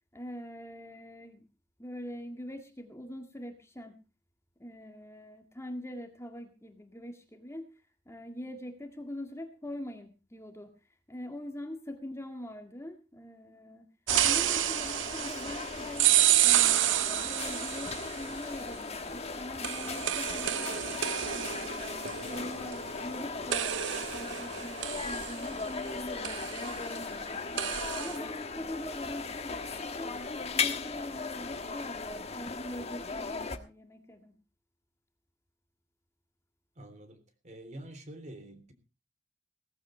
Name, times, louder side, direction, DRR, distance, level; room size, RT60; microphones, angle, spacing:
voice 1, 0.1-1.5 1.8-4.0 4.6-7.7 8.1-10.7 11.1-13.9 14.2-16.1 16.4-20.7 21.3-23.8 24.1-27.4 27.9-30.1 30.5-34.4, left 1 dB, 15° left, 5 dB, 1.9 m, -43 dB
sound 1, 14.1-33.6, left 4 dB, 35° left, 1.4 m, -37 dB
sound 2, 14.1-18.3 19.6-23.2 23.5-25.9 26.2-26.8 27.6-28.2, right 13 dB, 75° right, 0.7 m, -29 dB
voice 2, 36.7-38.7, right 1 dB, 40° right, 9 dB, 3.3 m, -47 dB
17.5 x 14.5 x 3.2 m, 0.31 s
head